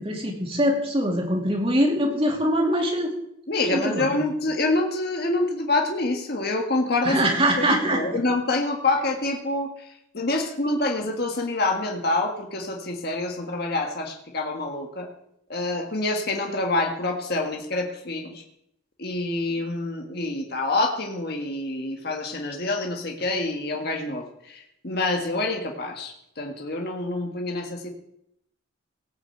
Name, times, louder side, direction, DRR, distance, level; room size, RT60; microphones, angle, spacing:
voice 1, 0.0-3.1 3.7-4.2 7.0-8.0, equal, 25° right, 0 dB, 2.9 m, -23 dB
voice 2, 3.5-7.2 7.5-9.9 10.1-15.1 15.5-18.4 19.0-27.9, left 2 dB, 50° left, 2 dB, 1.7 m, -26 dB
18.0 x 6.1 x 7.9 m, 0.76 s
head